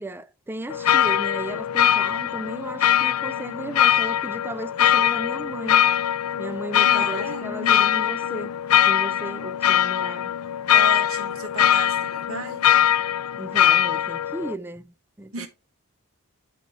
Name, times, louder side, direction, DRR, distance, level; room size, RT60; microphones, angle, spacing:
voice 1, 0.0-5.8 6.4-8.5 8.9-10.3 13.4-15.5, right 2 dB, 10° right, 0.4 m, -35 dB
sound 1, 0.7-14.5, left 10 dB, 75° left, 0.4 m, -21 dB
voice 2, 6.8-7.9 10.7-12.6 15.3-15.5, right 3 dB, 65° right, 1.6 m, -35 dB
12.0 x 4.0 x 3.2 m
head